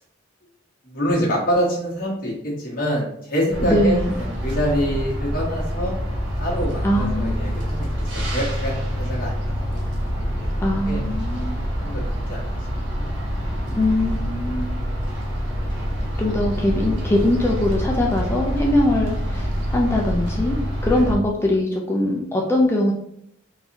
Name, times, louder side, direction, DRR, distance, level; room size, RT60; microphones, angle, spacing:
voice 1, 0.8-6.0 6.4-9.8 10.4-11.0 11.8-12.0 12.3-12.6 12.9-13.1 20.9-21.0, equal, 45° left, -4 dB, 1.2 m, -26 dB
sound 1, 3.5-21.1, equal, 70° right, 0.8 m, -26 dB
voice 2, 3.6-4.1 6.8-7.5 10.6-11.6 13.7-14.7 16.2-22.9, left 1 dB, 10° left, -1 dB, 0.4 m, -22 dB
3.9 x 2.6 x 2.9 m, 0.73 s
head